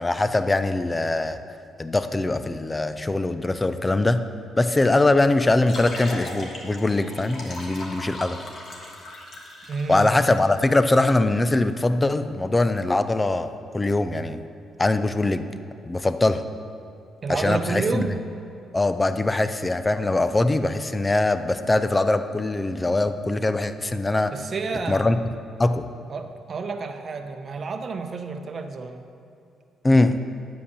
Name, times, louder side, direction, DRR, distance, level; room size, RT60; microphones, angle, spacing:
voice 1, 0.0-1.4 1.8-4.2 4.6-8.4 9.9-14.4 14.8-15.5 15.8-16.4 17.3-18.1 18.7-24.3 24.9-25.2 25.6-25.9 29.8-30.2, left 2 dB, 20° left, 10 dB, 0.5 m, -22 dB
sound 1, 5.4-10.4, left 1 dB, 55° left, 1.6 m, -38 dB
voice 2, 9.7-10.2 17.2-18.2 24.3-25.1 26.1-29.0, right 4 dB, 45° right, 6 dB, 0.8 m, -30 dB
9.8 x 5.1 x 6.9 m, 2.7 s
cardioid pair, 90°, 0 cm